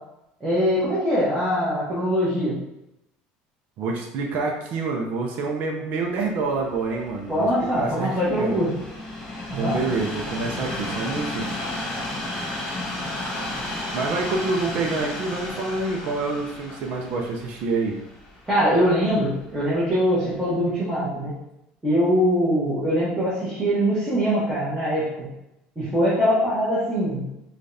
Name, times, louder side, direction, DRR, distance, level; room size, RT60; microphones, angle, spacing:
voice 1, 0.4-2.5 7.3-8.7 9.5-9.8 18.5-21.3 21.8-25.0 25.8-27.2, equal, 10° right, -11 dB, 1.2 m, -22 dB
voice 2, 3.8-7.5 7.8-8.6 9.5-11.5 13.9-18.0, right 3 dB, 50° right, 0 dB, 0.6 m, -27 dB
Train, 6.4-19.6 20.3-20.4, left 1 dB, 20° left, 1.3 m, -33 dB
4.9 x 2.4 x 2.7 m, 0.85 s
cardioid pair, 150°, 4 cm